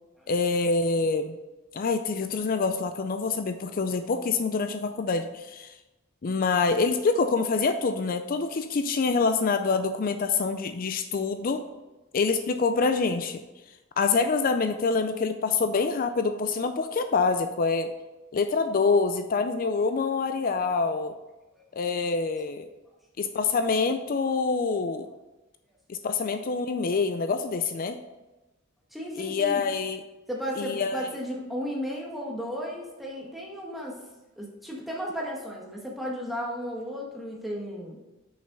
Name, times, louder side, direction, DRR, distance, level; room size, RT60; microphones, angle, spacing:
voice 1, 0.3-1.4 1.7-5.7 6.2-11.6 12.1-13.4 14.0-17.9 18.3-21.1 21.8-22.7 23.2-25.1 25.9-28.0 29.2-30.0 30.6-31.1, left 4 dB, 45° left, 8 dB, 0.4 m, -26 dB
voice 2, 28.9-29.6 30.3-34.0 34.4-38.0, equal, ahead, -3 dB, 1.6 m, -34 dB
6.4 x 5.7 x 5.3 m, 1.1 s
head